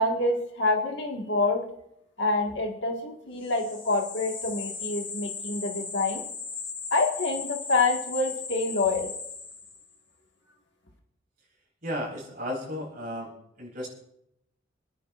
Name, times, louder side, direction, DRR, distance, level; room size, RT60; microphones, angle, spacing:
voice 1, 0.0-1.6 2.2-6.2 6.9-9.1, left 2 dB, 60° left, 1 dB, 1.6 m, -27 dB
sound 1, 3.4-9.9, left 5 dB, 25° left, 1.7 m, -37 dB
voice 2, 11.8-13.3 13.6-13.9, equal, 45° right, -1 dB, 4.5 m, -34 dB
27.0 x 10.0 x 2.5 m, 0.78 s
head